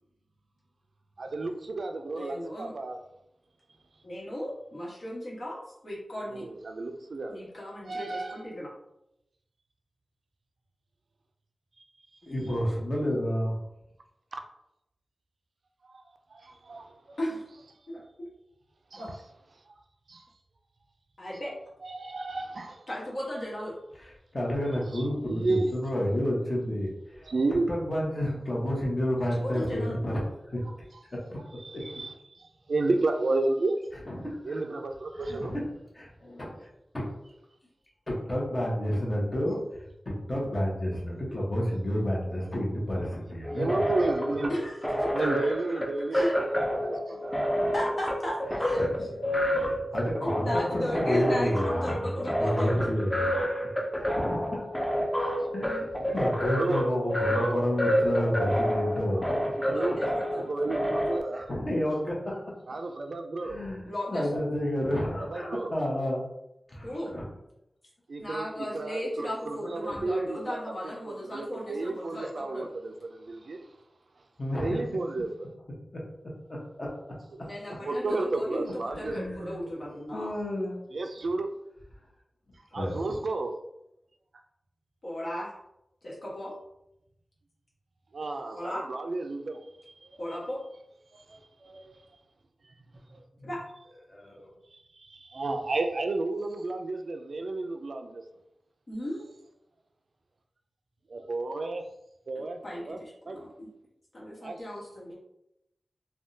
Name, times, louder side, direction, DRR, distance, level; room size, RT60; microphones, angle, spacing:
voice 1, 1.2-3.0 6.2-7.5 7.9-8.5 11.8-11.9 15.9-16.0 16.3-17.2 18.9-19.0 20.1-20.2 21.8-22.9 24.9-25.7 27.2-27.7 30.6-30.7 31.6-33.8 34.4-35.5 43.5-44.5 45.1-47.7 49.7-50.4 53.9-54.1 55.1-55.5 56.5-56.8 57.3-57.6 58.0-58.3 59.2-60.1 60.3-61.5 62.7-63.6 65.3-65.7 68.1-70.6 70.8-73.6 74.5-75.5 77.3-77.4 77.8-79.5 80.9-81.5 82.7-83.5 88.1-90.2 91.1-92.0 92.6-92.7 93.1-93.2 94.7-98.2 101.1-101.8 102.3-102.6 102.9-103.0 103.3-103.4 104.4-104.6, right 2 dB, 70° right, 0.3 m, -32 dB
voice 2, 2.2-2.7 4.0-5.6 5.8-6.4 7.3-8.7 17.2-17.4 17.9-18.0 19.0-19.1 21.2-21.5 22.9-23.8 29.3-30.0 44.5-44.7 45.0-45.3 45.7-45.8 46.1-46.4 47.7-49.1 50.2-52.9 59.6-60.5 63.8-64.5 66.8-67.2 68.2-72.7 77.4-80.3 85.0-85.5 86.0-86.5 88.5-88.8 90.2-90.6 93.4-93.6 98.9-99.2 102.4-103.7 104.1-105.1, equal, 60° left, 1.2 m, -35 dB
voice 3, 12.2-13.5 24.3-27.3 27.7-30.2 30.5-30.6 31.3-31.4 31.7-31.9 34.1-34.6 35.2-35.6 35.9-36.5 36.9-37.0 38.1-43.8 48.8-48.9 49.5-53.3 53.9-54.6 55.5-59.2 61.3-62.4 63.4-66.2 66.7-67.3 69.9-70.0 74.4-74.8 76.8-76.9 79.0-79.6 80.1-80.8 82.7-83.2 93.4-93.5 94.1-94.5, equal, 35° left, 1.1 m, -30 dB
sound 1, 43.4-61.2, equal, 10° left, 0.6 m, -29 dB
3.5 x 2.2 x 2.7 m
wide cardioid pair, 85°, 0 cm